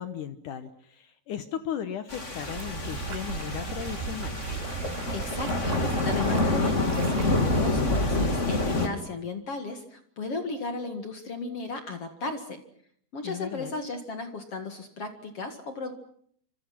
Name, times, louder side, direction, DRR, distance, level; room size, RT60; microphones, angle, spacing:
voice 1, 0.0-4.4 13.2-13.7, left 9 dB, 70° left, 11 dB, 2.0 m, -36 dB
sound 1, 2.1-8.9, left 2 dB, 20° left, 2.5 m, -27 dB
sound 2, 2.4-7.6, right 6 dB, 70° right, 3.8 m, -37 dB
voice 2, 5.1-12.6 13.1-15.9, left 3 dB, 45° left, 7 dB, 2.2 m, -35 dB
28.0 x 26.0 x 5.9 m, 0.62 s
omnidirectional pair, 5.0 m